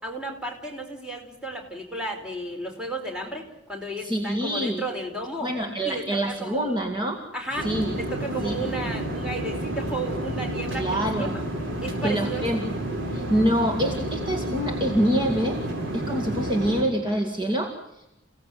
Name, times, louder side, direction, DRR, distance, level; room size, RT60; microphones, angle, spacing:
voice 1, 0.0-5.5 5.8-6.8 7.3-7.7 7.9-11.4 11.8-12.5, right 2 dB, 5° right, 1 dB, 4.6 m, -33 dB
voice 2, 4.0-4.8 5.4-7.2 7.6-7.9 8.4-8.6 10.8-11.3 12.0-12.8 13.1-15.6 15.9-18.1, equal, 25° right, 2 dB, 2.3 m, -26 dB
sound 1, 7.5-16.8, right 1 dB, 80° right, 5.0 m, -30 dB
29.5 x 17.5 x 9.4 m, 0.91 s
head